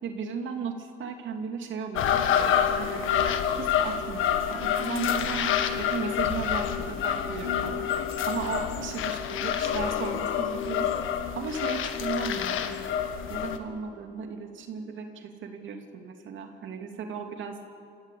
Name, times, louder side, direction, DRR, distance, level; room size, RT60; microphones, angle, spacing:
voice 1, 0.0-3.0 3.5-10.9 11.4-13.0 13.3-17.6, right 5 dB, 75° right, 4 dB, 2.6 m, -36 dB
sound 1, 1.9-13.6, left 8 dB, 85° left, 1.6 m, -27 dB
26.5 x 15.5 x 8.5 m, 2.3 s
cardioid pair, 90°, 20 cm